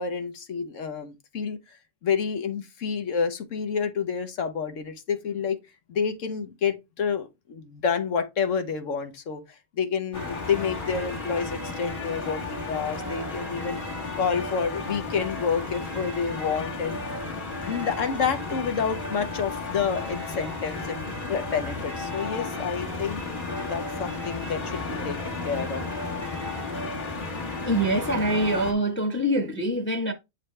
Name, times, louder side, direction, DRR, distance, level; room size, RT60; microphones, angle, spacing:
voice 1, 0.0-1.8 2.0-5.6 5.9-9.4 9.8-13.8 14.2-17.0 17.6-23.2 23.7-25.8, left 6 dB, 85° left, 1.3 m, -29 dB
sound 1, 10.1-28.7, left 3 dB, 45° left, 1.5 m, -33 dB
voice 2, 27.7-30.1, right 1 dB, 10° left, 0.8 m, -24 dB
7.9 x 4.1 x 3.2 m
omnidirectional pair, 1.3 m